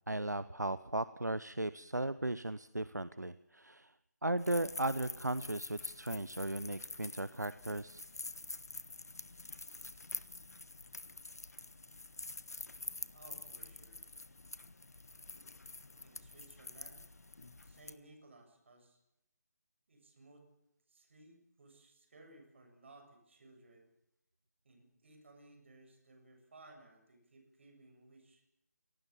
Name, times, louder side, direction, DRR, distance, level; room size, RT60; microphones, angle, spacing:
voice 1, 0.1-3.9 4.2-8.0, right 1 dB, 85° right, 15 dB, 0.9 m, -36 dB
sound 1, 4.4-17.9, left 3 dB, 65° left, 1.5 m, -47 dB
voice 2, 13.1-14.0 16.0-17.1 17.6-19.0 19.9-20.5 20.9-23.9 24.6-28.4, right 2 dB, 45° right, 4 dB, 7.1 m, -60 dB
25.5 x 19.0 x 7.3 m, 0.80 s
figure-of-eight pair, 155°, 9 cm